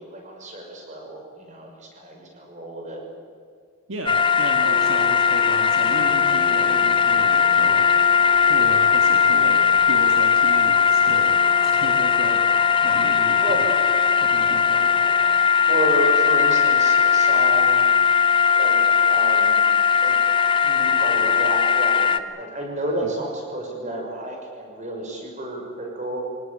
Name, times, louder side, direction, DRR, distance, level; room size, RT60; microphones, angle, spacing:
voice 1, 0.0-3.0 13.3-13.7 15.7-17.9 18.5-19.6 20.0-20.2 20.6-26.2, right 1 dB, 35° right, 1 dB, 6.0 m, -31 dB
voice 2, 3.9-7.9 8.5-12.4 12.8-13.7 14.2-14.9 23.0-23.2, right 1 dB, 65° right, 3 dB, 2.1 m, -35 dB
sound 1, 4.1-22.2, left 7 dB, 25° left, 0.9 m, -18 dB
25.5 x 19.0 x 8.7 m, 2.2 s
head